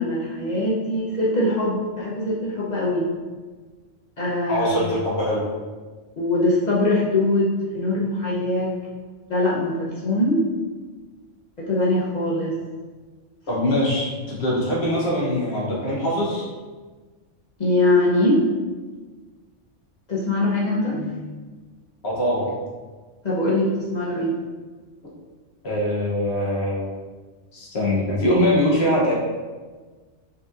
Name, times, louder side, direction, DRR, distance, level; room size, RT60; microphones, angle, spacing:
voice 1, 0.0-3.1 4.2-4.7 6.2-7.5 7.7-8.7 9.3-10.4 11.7-12.5 17.6-18.4 20.1-21.1 23.2-24.3, left 2 dB, 45° left, -5 dB, 0.6 m, -22 dB
voice 2, 4.5-5.4 13.5-16.4 22.0-22.6 25.6-26.9 27.5-29.1, left 1 dB, 60° left, -5 dB, 1.1 m, -22 dB
5.4 x 2.7 x 2.4 m, 1.4 s
omnidirectional pair, 1.3 m